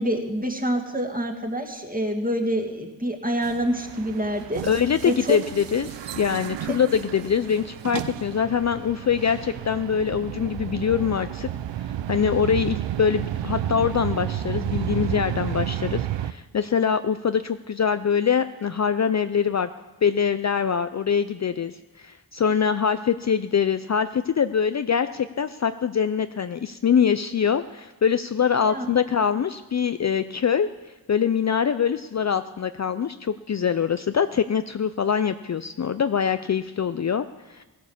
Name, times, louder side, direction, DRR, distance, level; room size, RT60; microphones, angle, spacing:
voice 1, 0.0-4.6 5.0-5.4 6.7-6.8 28.6-28.8, equal, 20° right, 3 dB, 2.2 m, -26 dB
sound 1, 3.4-16.3, right 11 dB, 85° right, 0.6 m, -31 dB
voice 2, 4.6-11.5 11.8-19.7 20.0-30.7 31.1-37.6, left 7 dB, 40° left, 11 dB, 0.5 m, -24 dB
15.5 x 9.3 x 7.2 m, 1.2 s
cardioid pair, 50°, 42 cm